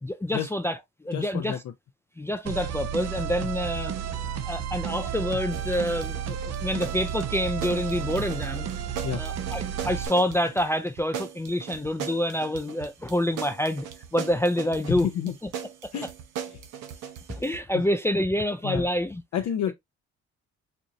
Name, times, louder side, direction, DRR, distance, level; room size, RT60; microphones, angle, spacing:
voice 1, 0.0-1.6 2.2-3.9 4.5-8.7 9.2-13.9 14.1-15.1 17.3-19.2 19.7-19.8, left 1 dB, 10° left, 0.4 m, -27 dB
voice 2, 1.1-1.6 9.0-9.2 14.9-15.3 15.9-16.1 16.5-16.6 18.6-18.9 19.3-19.7, left 9 dB, 65° left, 0.6 m, -29 dB
sound 1, 2.5-10.1, right 8 dB, 60° right, 0.7 m, -32 dB
sound 2, 5.5-17.6, right 8 dB, 90° right, 0.8 m, -39 dB
4.4 x 2.6 x 2.6 m
cardioid pair, 90°, 30 cm